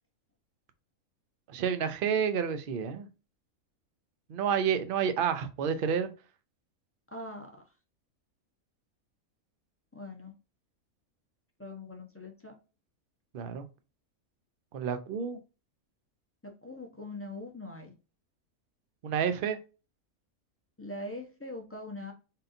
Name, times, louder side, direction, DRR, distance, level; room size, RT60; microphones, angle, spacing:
voice 1, 1.5-3.1 4.3-6.1 13.3-13.7 14.7-15.4 19.0-19.6, right 7 dB, 60° right, 0.6 m, -29 dB
voice 2, 7.1-7.5 9.9-10.3 11.6-12.5 16.6-17.9 20.8-22.1, left 2 dB, 15° left, 0.5 m, -42 dB
3.8 x 3.7 x 2.6 m
omnidirectional pair, 1.5 m